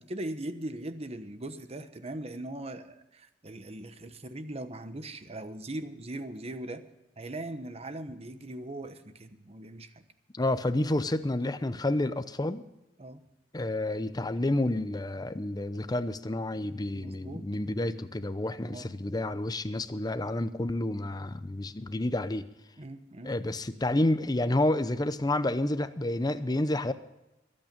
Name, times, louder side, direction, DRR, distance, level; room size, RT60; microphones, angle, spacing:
voice 1, 0.0-6.8 7.2-10.0 13.0-13.2 16.9-17.4 18.7-18.9 22.8-23.3, right 1 dB, 35° right, 10 dB, 1.1 m, -40 dB
voice 2, 10.3-12.6 13.5-22.5 23.2-26.9, left 1 dB, 20° left, 12 dB, 0.7 m, -29 dB
22.0 x 8.9 x 5.2 m, 0.96 s
head